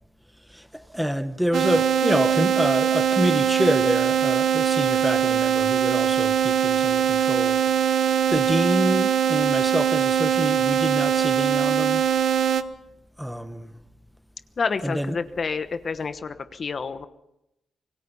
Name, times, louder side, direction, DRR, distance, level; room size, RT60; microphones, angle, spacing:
voice 1, 0.5-7.6 7.9-12.0 13.2-13.7 14.8-15.2, equal, ahead, 1.4 m, -27 dB
sound 1, 1.5-12.6, right 8 dB, 75° right, 1.1 m, -22 dB
voice 2, 14.6-17.1, left 5 dB, 50° left, 1.1 m, -29 dB
26.0 x 19.0 x 5.5 m
cardioid pair, 100°, 0 cm